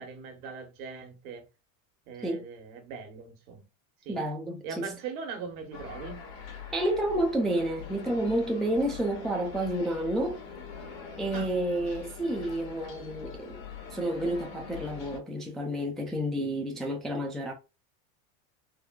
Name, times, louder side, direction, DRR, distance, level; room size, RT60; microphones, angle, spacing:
voice 1, 0.0-1.4 2.1-3.6 4.0-4.2 4.6-6.2 11.3-11.5, right 5 dB, 75° right, 1.3 m, -40 dB
voice 2, 4.1-4.9 6.7-10.4 11.2-13.6 13.9-17.5, right 1 dB, ahead, 0.4 m, -30 dB
sound 1, 5.7-15.2, left 6 dB, 60° left, 1.5 m, -43 dB
3.8 x 2.2 x 2.2 m
supercardioid pair, 110°, 43 cm